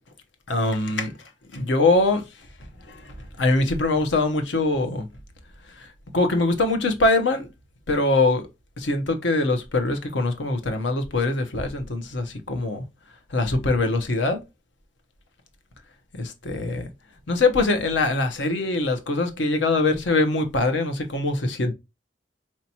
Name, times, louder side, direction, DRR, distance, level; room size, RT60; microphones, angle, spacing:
voice 1, 0.5-1.1 1.5-2.3 2.9-5.1 5.8-7.5 7.9-8.5 8.8-12.8 13.3-14.4 16.1-16.9 17.3-21.7, left 2 dB, 80° left, 0.8 m, -23 dB
4.4 x 2.8 x 2.8 m
head